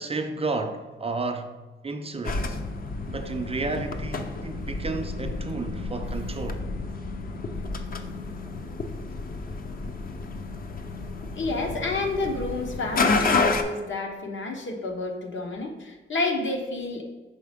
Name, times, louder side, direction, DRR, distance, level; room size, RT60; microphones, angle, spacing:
voice 1, 0.0-1.5 1.8-2.6 3.1-6.6, right 3 dB, 30° right, 0.5 m, -32 dB
sound 1, 2.2-13.6, left 3 dB, 45° left, 0.5 m, -30 dB
voice 2, 11.3-17.0, left 2 dB, 70° left, 1.0 m, -29 dB
5.8 x 4.1 x 5.0 m
wide cardioid pair, 140°, 20 cm